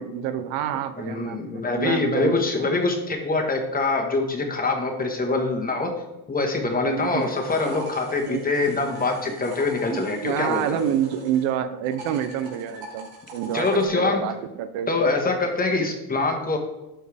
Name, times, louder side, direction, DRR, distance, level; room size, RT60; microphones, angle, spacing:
voice 1, 0.0-2.8 5.2-5.4 6.8-7.3 8.3-8.4 9.7-14.9, right 10 dB, 75° right, 11 dB, 0.8 m, -28 dB
voice 2, 1.0-5.9 6.3-10.8 13.5-14.2 14.9-16.6, left 3 dB, 20° left, 2 dB, 1.4 m, -24 dB
sound 1, 6.9-11.5 11.8-13.9, right 2 dB, 60° right, 2.8 m, -42 dB
12.0 x 4.5 x 3.4 m, 1.0 s
cardioid pair, 110°, 45 cm